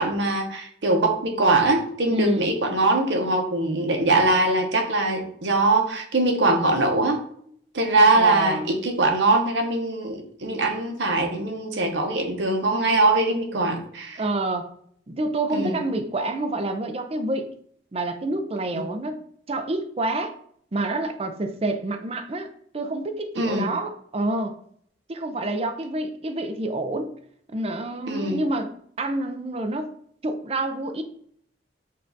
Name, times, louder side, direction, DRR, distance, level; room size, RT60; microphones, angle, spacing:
voice 1, 0.0-7.2 7.7-14.2 15.5-15.8 18.7-18.8 23.4-23.7 28.1-28.4, right 2 dB, 80° right, 3 dB, 0.9 m, -22 dB
voice 2, 2.1-2.5 5.4-5.5 8.1-8.7 11.1-11.2 14.2-14.7 15.1-17.5 17.9-19.2 19.5-20.3 20.7-22.5 22.7-24.6 25.1-27.1 27.5-29.9 30.2-31.0, right 2 dB, 35° right, 7 dB, 0.5 m, -28 dB
5.4 x 2.5 x 3.9 m, 0.63 s
head